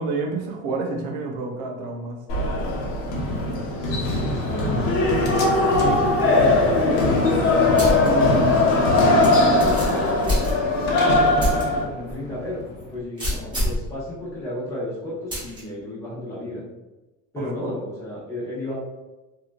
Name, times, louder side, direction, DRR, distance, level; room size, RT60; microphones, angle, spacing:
voice 1, 0.0-2.2 8.0-8.6 17.4-17.7, right 3 dB, 70° right, 1 dB, 0.6 m, -28 dB
sound 1, 2.3-11.8, left 2 dB, 75° left, 0.9 m, -20 dB
voice 2, 3.8-5.0 5.3-7.4 9.4-16.6 17.3-18.7, left 1 dB, 10° left, -9 dB, 1.0 m, -33 dB
Slam, 4.0-13.0, left 2 dB, 35° left, 0.5 m, -36 dB
sound 2, 7.8-8.1 8.5-8.6 9.2-10.9 11.4-11.6 12.1-12.2 13.2-13.9 15.3-15.6, left 1 dB, 15° right, 1.1 m, -26 dB
2.9 x 2.7 x 2.4 m, 1.1 s
cardioid pair, 160°, 32 cm